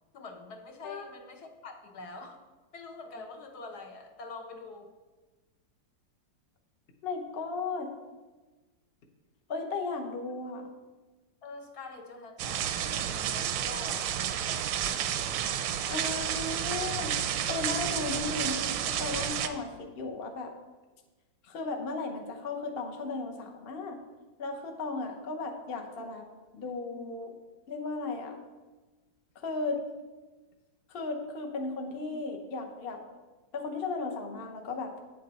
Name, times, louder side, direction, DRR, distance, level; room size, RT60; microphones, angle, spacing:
voice 1, 0.1-2.4 2.7-4.9 11.4-15.1, left 3 dB, 65° left, 4 dB, 1.3 m, -45 dB
voice 2, 7.0-7.9 9.5-10.7 15.9-17.2 17.5-20.6 21.4-24.0 24.4-26.3 26.5-27.4 27.7-28.4 29.3-29.8 30.9-33.0 33.5-35.0, left 3 dB, 45° left, 3 dB, 0.8 m, -35 dB
sound 1, 12.4-19.5, right 9 dB, 85° right, 1.3 m, -31 dB
9.0 x 7.5 x 4.1 m, 1.3 s
omnidirectional pair, 2.0 m